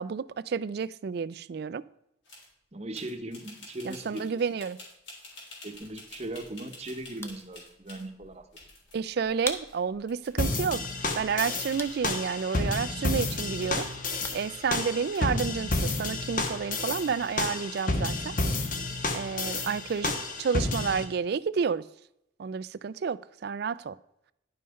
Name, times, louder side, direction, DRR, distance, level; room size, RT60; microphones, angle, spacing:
voice 1, 0.0-1.8 3.8-4.8 8.9-10.8 11.2-13.9 14.3-18.3 19.1-20.1 20.4-21.8 22.4-24.0, right 6 dB, 55° right, 0.3 m, -30 dB
sound 1, 2.2-2.5 2.9-8.1 8.5-9.1 9.7-9.8 10.0-10.4 10.7-11.0 11.4-12.7 13.2-14.3 14.7-15.5 16.0-16.8 17.8-18.4, left 2 dB, 75° left, 3.6 m, -50 dB
voice 2, 2.7-4.4 5.6-8.4 19.3-19.7, right 1 dB, 35° right, 0.9 m, -39 dB
sound 2, 5.7-15.8, left 2 dB, 15° left, 0.8 m, -46 dB
sound 3, 10.4-21.0, left 2 dB, 45° left, 1.2 m, -31 dB
10.5 x 5.6 x 5.2 m
head